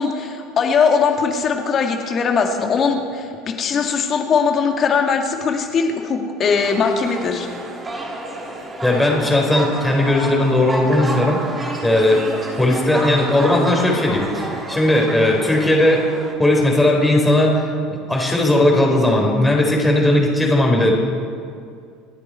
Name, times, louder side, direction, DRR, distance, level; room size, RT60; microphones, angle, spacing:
voice 1, 0.0-7.5, left 5 dB, 40° left, 3 dB, 2.3 m, -20 dB
sound 1, 6.4-16.3, right 1 dB, 25° right, 3.5 m, -30 dB
voice 2, 8.8-11.4 11.8-12.2 12.5-16.0 16.4-20.9, left 1 dB, 10° left, -1 dB, 4.2 m, -17 dB
28.5 x 9.8 x 4.5 m, 2.2 s
hypercardioid pair, 75°, 0 cm